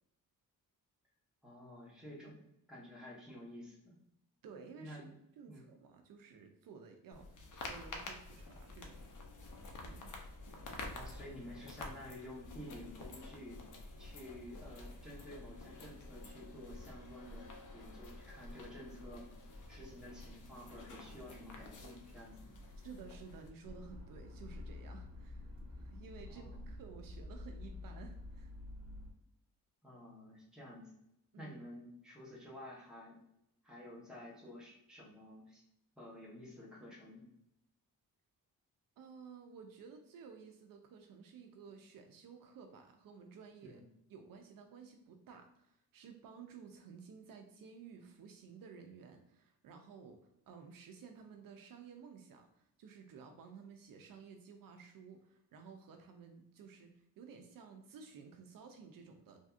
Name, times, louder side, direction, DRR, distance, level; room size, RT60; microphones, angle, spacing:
voice 1, 1.4-2.4 2.7-3.9 4.8-5.1 5.5-5.7 10.9-13.7 14.0-19.3 19.7-22.5 26.3-26.7 29.8-30.9 31.4-33.2 33.6-35.6 36.0-37.3 43.6-43.9, left 1 dB, ahead, -5 dB, 1.0 m, -51 dB
voice 2, 4.4-5.0 5.4-9.0 9.8-10.1 22.8-28.5 31.3-31.5 39.0-43.8 44.1-50.2 50.5-59.4, right 5 dB, 70° right, 4 dB, 0.5 m, -54 dB
sound 1, 7.1-23.5, left 2 dB, 55° left, 0.7 m, -49 dB
sound 2, 23.6-29.1, left 2 dB, 50° right, 0.8 m, -48 dB
3.3 x 2.6 x 2.4 m, 0.79 s
cardioid pair, 130°, 36 cm